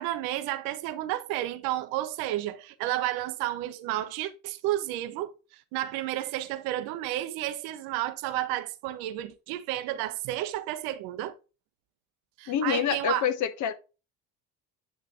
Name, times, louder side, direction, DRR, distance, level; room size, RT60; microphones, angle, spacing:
voice 1, 0.0-11.3 12.4-13.3, right 14 dB, 50° right, 0.7 m, -31 dB
voice 2, 12.5-13.7, left 9 dB, 40° left, 0.8 m, -27 dB
8.6 x 2.9 x 4.8 m
figure-of-eight pair, 60°, 47 cm